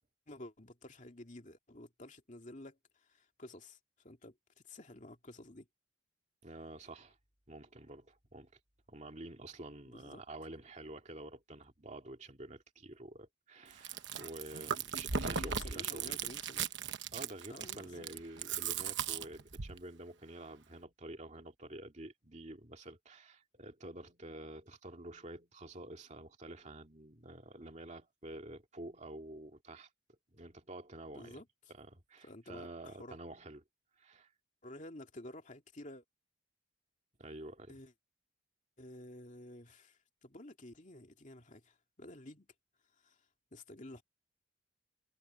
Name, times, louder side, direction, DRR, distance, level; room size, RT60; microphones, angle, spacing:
voice 1, 0.3-4.4 4.6-5.7 9.9-10.2 15.3-16.7 17.5-18.1 31.1-31.5 32.2-33.2 34.6-36.0 37.7-37.9 38.8-42.5 43.0-43.2 43.5-44.0, left 1 dB, 40° left, 2.5 m, -51 dB
voice 2, 6.4-7.2 7.5-8.5 8.9-16.2 17.1-29.9 30.3-31.4 31.7-33.6 34.0-34.3 37.2-37.7, right 1 dB, 35° right, 2.3 m, -49 dB
Chewing mastication, 13.7-19.8, right 7 dB, 60° right, 1.1 m, -37 dB
head